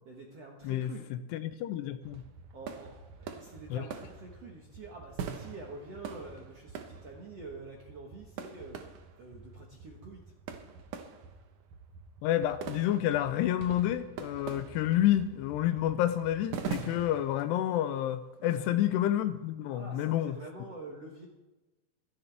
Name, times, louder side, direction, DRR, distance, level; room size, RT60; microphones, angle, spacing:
voice 1, 0.1-1.0 2.5-10.3 18.4-18.8 19.7-21.3, right 3 dB, 65° right, 1.5 m, -47 dB
voice 2, 0.6-2.2 3.7-3.8 12.2-20.4, left 12 dB, 80° left, 2.6 m, -29 dB
sound 1, 2.0-17.4, right 6 dB, 85° right, 1.7 m, -44 dB
25.5 x 10.0 x 3.5 m
omnidirectional pair, 5.2 m